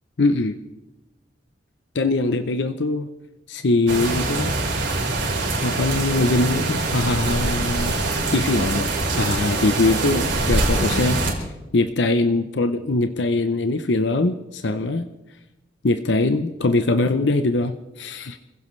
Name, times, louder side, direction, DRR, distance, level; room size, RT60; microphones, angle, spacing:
voice 1, 0.2-0.6 1.9-3.1 3.5-4.5 5.6-11.4 11.7-15.1 15.8-18.4, left 2 dB, 75° left, 9 dB, 0.7 m, -22 dB
sound 1, 3.9-11.3, right 2 dB, 85° right, 4.5 m, -24 dB
28.0 x 16.0 x 3.2 m, 1.0 s
head